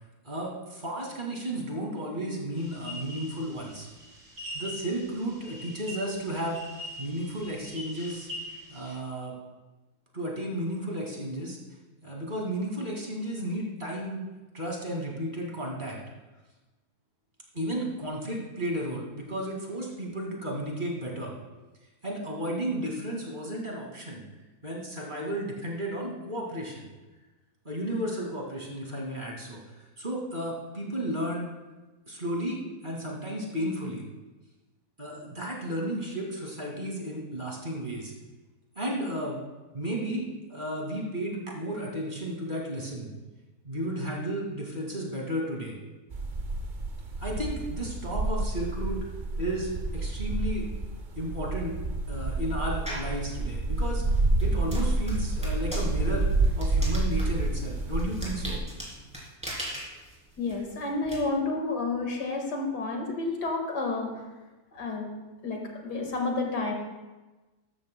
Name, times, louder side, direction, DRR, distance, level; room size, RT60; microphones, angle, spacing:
voice 1, 0.2-3.9 4.5-6.6 7.0-8.3 8.7-9.3 10.1-11.6 12.0-14.3 14.5-16.0 17.5-21.3 22.0-24.2 24.6-26.9 27.6-31.5 32.1-32.6 32.8-34.0 35.0-38.1 38.8-39.4 39.7-40.2 40.5-43.1 43.6-45.8 47.2-49.0 49.4-50.7 51.1-51.8 52.1-54.0 54.4-56.3 56.6-58.6, right 1 dB, 30° right, -2 dB, 2.3 m, -33 dB
sound 1, 2.6-9.0, left 1 dB, 80° right, 3.1 m, -43 dB
sound 2, 46.1-58.6, right 2 dB, 50° right, 0.6 m, -29 dB
sound 3, 52.9-53.2 53.7-61.2, equal, 5° right, 3.1 m, -40 dB
voice 2, 60.4-64.2 64.7-65.1 65.4-66.7, left 3 dB, 90° left, 2 dB, 2.3 m, -30 dB
14.0 x 12.5 x 2.2 m, 1.2 s
omnidirectional pair, 1.7 m